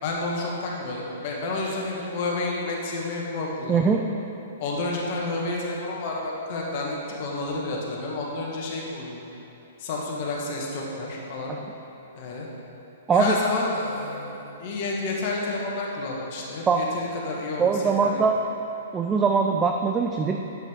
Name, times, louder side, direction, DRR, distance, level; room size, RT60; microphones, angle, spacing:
voice 1, 0.0-3.9 4.6-9.2 9.8-11.5 12.2-12.5 13.1-18.3, left 2 dB, 45° left, -3 dB, 1.8 m, -30 dB
voice 2, 3.7-4.0 11.5-11.6 13.1-13.4 16.7-16.8 17.6-18.3 18.9-20.4, right 5 dB, 15° right, 2 dB, 0.4 m, -22 dB
10.5 x 7.8 x 3.7 m, 2.9 s
figure-of-eight pair, 110°, 0 cm